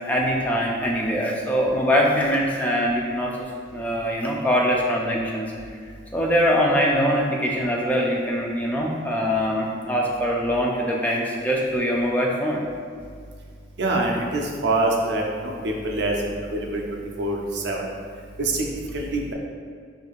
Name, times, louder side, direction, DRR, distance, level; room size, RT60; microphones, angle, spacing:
voice 1, 0.1-3.4 3.7-5.5 6.1-12.6, equal, 10° left, -2 dB, 0.3 m, -23 dB
voice 2, 13.8-16.1 16.5-17.9 18.4-19.3, right 2 dB, 60° right, 0 dB, 0.5 m, -25 dB
4.4 x 2.6 x 2.4 m, 2.1 s
head